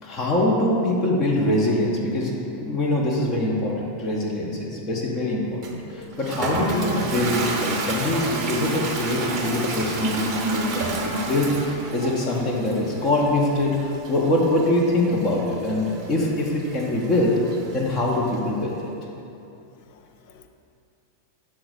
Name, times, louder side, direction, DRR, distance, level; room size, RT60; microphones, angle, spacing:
voice 1, 0.0-17.3 17.7-18.9, left 1 dB, 30° left, -3 dB, 0.9 m, -24 dB
Toilet flush, 5.6-18.4, right 2 dB, 35° right, 0.9 m, -31 dB
voice 2, 19.6-20.5, left 9 dB, 50° left, 6 dB, 0.5 m, -50 dB
6.1 x 3.9 x 6.3 m, 2.7 s
figure-of-eight pair, 90°, 0 cm